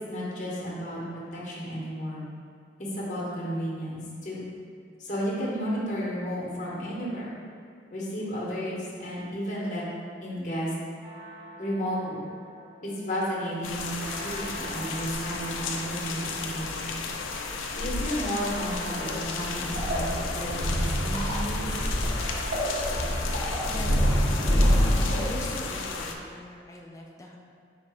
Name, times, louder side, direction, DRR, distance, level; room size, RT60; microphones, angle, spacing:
voice 1, 0.1-1.0 1.3-2.2 2.8-4.5 5.0-7.3 7.9-9.8 10.2-10.7 11.6-12.2 12.8-16.9 17.7-21.7, equal, 40° left, -5 dB, 0.9 m, -32 dB
sound 1, 11.0-25.9, right 1 dB, 30° right, 0.7 m, -46 dB
sound 2, 13.6-26.1, left 4 dB, 85° left, 0.4 m, -34 dB
sound 3, 19.7-25.8, equal, 55° right, 1.1 m, -26 dB
voice 2, 23.6-24.6 25.1-27.4, left 1 dB, 15° left, -1 dB, 0.3 m, -41 dB
4.2 x 2.6 x 4.7 m, 2.2 s
head